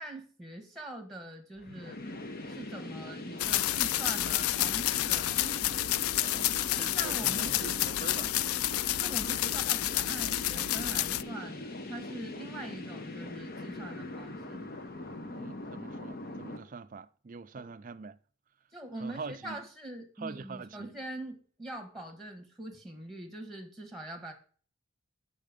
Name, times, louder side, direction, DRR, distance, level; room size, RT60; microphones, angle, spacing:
voice 1, 0.0-2.0 2.5-5.4 6.8-7.8 9.0-14.6 17.5-17.7 18.7-24.3, right 1 dB, ahead, 1.3 m, -43 dB
sound 1, 1.6-16.6, left 2 dB, 45° left, 0.9 m, -41 dB
sound 2, 3.4-11.2, left 14 dB, 85° left, 0.3 m, -29 dB
voice 2, 6.2-8.4 9.3-9.4 15.3-18.2 19.0-19.6 20.2-20.9, right 4 dB, 40° right, 0.4 m, -44 dB
7.6 x 5.7 x 5.1 m
head